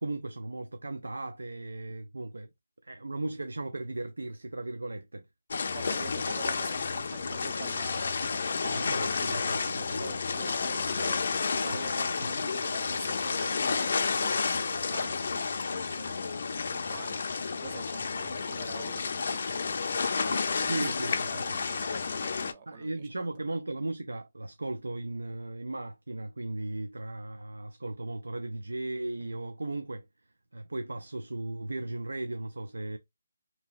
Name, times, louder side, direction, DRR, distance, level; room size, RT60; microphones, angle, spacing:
voice 1, 0.0-2.5 2.8-5.3 8.6-10.1 11.7-11.8 20.7-21.4 22.7-30.0 30.5-33.0, right 2 dB, 85° right, 0.4 m, -36 dB
sound 1, 5.5-22.5, left 5 dB, 55° left, 0.4 m, -31 dB
voice 2, 5.7-8.5 9.7-11.3 11.6-20.9 21.3-23.3, right 5 dB, 35° right, 0.6 m, -47 dB
2.8 x 2.7 x 2.4 m
figure-of-eight pair, 155°, 0 cm